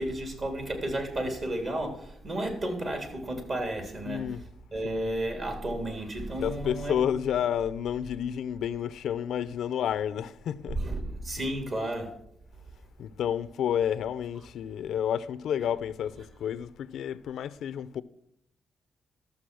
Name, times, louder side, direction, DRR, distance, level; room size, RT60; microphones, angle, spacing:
voice 1, 0.0-4.2 4.7-7.2 10.8-12.1, right 1 dB, 45° right, 3.4 m, -32 dB
voice 2, 4.0-4.4 4.8-5.1 6.4-10.8 13.0-18.0, left 9 dB, 85° left, 0.6 m, -30 dB
13.0 x 7.1 x 6.2 m
cardioid pair, 100°, 0 cm